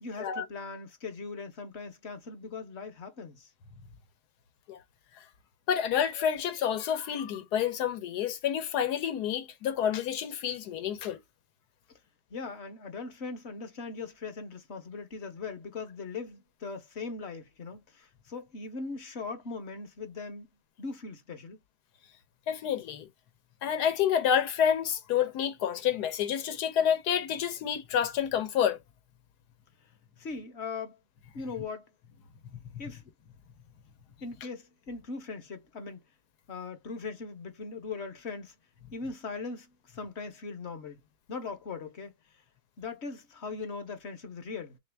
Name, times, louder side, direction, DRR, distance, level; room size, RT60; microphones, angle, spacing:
voice 1, 0.0-3.5 12.3-20.5 20.8-21.6 30.2-31.0 31.3-31.9 32.8-33.0 34.2-36.0 36.5-38.5 38.9-41.0 41.3-42.1 42.8-44.8, left 4 dB, 50° left, 1.0 m, -40 dB
voice 2, 5.7-11.2 22.5-23.1 23.6-28.8 32.5-32.6, left 9 dB, 80° left, 1.3 m, -29 dB
3.3 x 3.0 x 3.3 m
omnidirectional pair, 1.7 m